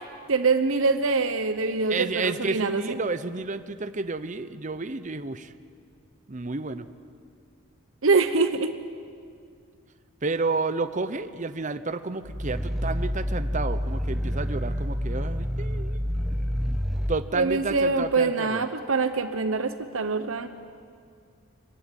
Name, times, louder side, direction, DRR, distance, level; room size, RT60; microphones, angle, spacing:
voice 1, 0.3-3.0 8.0-8.7 17.3-20.5, right 4 dB, 75° right, 9 dB, 0.9 m, -24 dB
voice 2, 1.9-5.5 6.3-6.9 10.2-16.0 17.1-18.7, right 3 dB, 35° right, 11 dB, 0.8 m, -30 dB
Growling, 12.2-17.2, equal, ahead, 1.0 m, -28 dB
25.5 x 15.0 x 10.0 m, 2.3 s
head